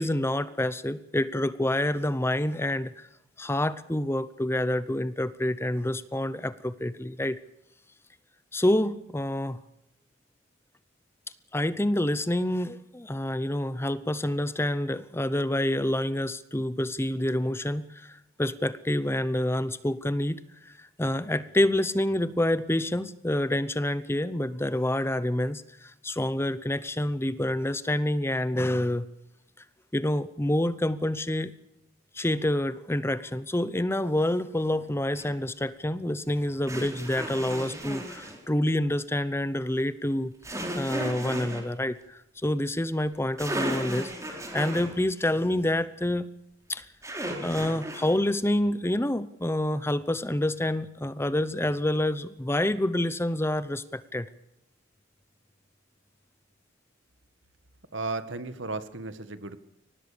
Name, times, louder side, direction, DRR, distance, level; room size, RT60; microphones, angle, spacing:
voice 1, 0.0-3.1 3.4-7.4 8.5-9.6 11.5-29.1 29.9-31.5 32.1-40.3 40.7-46.3 46.7-46.8 47.4-54.3, left 1 dB, 15° left, 15 dB, 0.8 m, -27 dB
sound 1, 35.1-35.3 36.7-38.4 40.4-41.6 43.1-43.2 43.4-44.9 47.0-48.2, right 1 dB, 15° right, 4.5 m, -34 dB
voice 2, 57.9-59.6, right 3 dB, 75° right, 12 dB, 1.8 m, -34 dB
23.5 x 19.0 x 6.8 m, 0.86 s
head